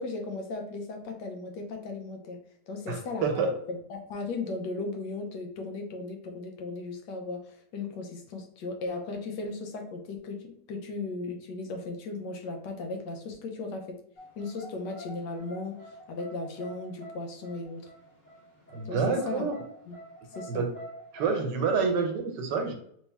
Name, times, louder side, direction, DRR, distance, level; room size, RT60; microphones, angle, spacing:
voice 1, 0.0-2.4 2.7-14.0 14.4-17.9 18.8-19.5 19.9-20.0 20.3-20.6, left 3 dB, 85° left, 4 dB, 1.4 m, -36 dB
voice 2, 2.9-3.5 18.7-19.5 20.5-20.7 21.1-22.7, right 5 dB, 85° right, 4 dB, 1.4 m, -28 dB
sound 1, 14.2-22.0, equal, 30° left, 1.1 m, -47 dB
3.3 x 3.1 x 3.4 m, 0.66 s
omnidirectional pair, 1.8 m